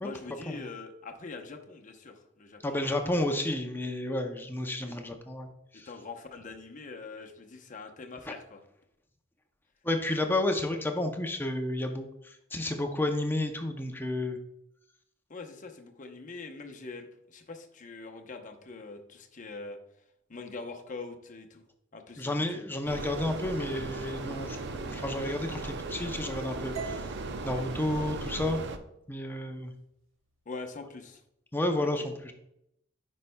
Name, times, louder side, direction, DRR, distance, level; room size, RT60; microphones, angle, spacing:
voice 1, 0.0-3.1 5.9-8.6 15.3-19.8 20.3-21.6 21.9-22.7 27.5-27.7 30.5-31.2 31.8-32.1, left 3 dB, 40° left, 4 dB, 0.8 m, -43 dB
voice 2, 2.6-5.5 5.7-5.9 9.8-12.1 12.5-14.4 22.2-27.0 27.4-28.6 29.1-29.7 31.5-32.3, left 1 dB, 10° left, 4 dB, 0.5 m, -31 dB
sound 1, 22.9-28.8, right 3 dB, 60° right, 0.6 m, -37 dB
sound 2, 26.8-30.9, right 6 dB, 80° right, 1.5 m, -47 dB
9.8 x 5.4 x 2.2 m, 0.78 s
head